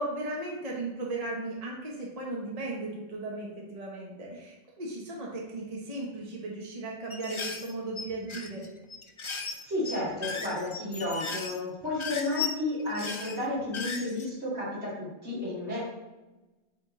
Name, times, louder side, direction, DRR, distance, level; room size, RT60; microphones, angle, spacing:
voice 1, 0.0-8.6, right 2 dB, 35° right, -3 dB, 1.1 m, -36 dB
sound 1, 7.1-14.3, left 5 dB, 55° left, 0.3 m, -37 dB
voice 2, 9.2-15.9, left 2 dB, 70° right, -8 dB, 2.6 m, -32 dB
8.3 x 3.5 x 3.7 m, 1.1 s
omnidirectional pair, 1.2 m